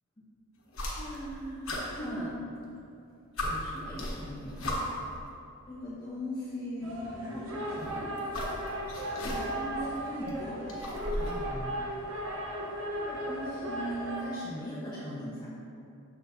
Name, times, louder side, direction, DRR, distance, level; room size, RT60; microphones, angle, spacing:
sound 1, 0.7-1.3 1.6-2.7 3.0-3.1 3.4-5.1 6.2-6.3 7.6-9.7 10.0-11.5, left 1 dB, 70° left, 1.3 m, -36 dB
voice 1, 0.9-2.4 3.4-4.6 5.7-8.1 8.5-8.8 9.1-10.8 11.1-11.8 13.0-15.5, equal, 20° left, -11 dB, 1.2 m, -39 dB
sound 2, 6.8-14.2, equal, 75° right, 1.1 m, -36 dB
7.2 x 6.6 x 2.9 m, 2.6 s
head